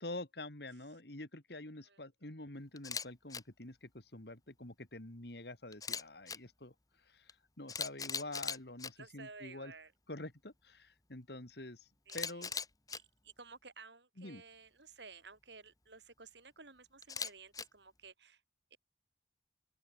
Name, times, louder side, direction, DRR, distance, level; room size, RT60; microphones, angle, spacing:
voice 1, 0.0-6.7 7.0-9.7 10.1-11.9 12.1-12.5 14.2-14.4, left 2 dB, 65° left, 2.6 m, -47 dB
Camera, 2.8-3.0 3.3-3.4 5.7-6.4 7.3-7.4 7.7-8.9 12.1-13.0 17.0-17.6, left 5 dB, 20° left, 1.5 m, -39 dB
voice 2, 9.0-9.9 12.1-12.5 12.9-18.4 18.7-18.8, right 4 dB, 75° right, 6.3 m, -55 dB
open air
head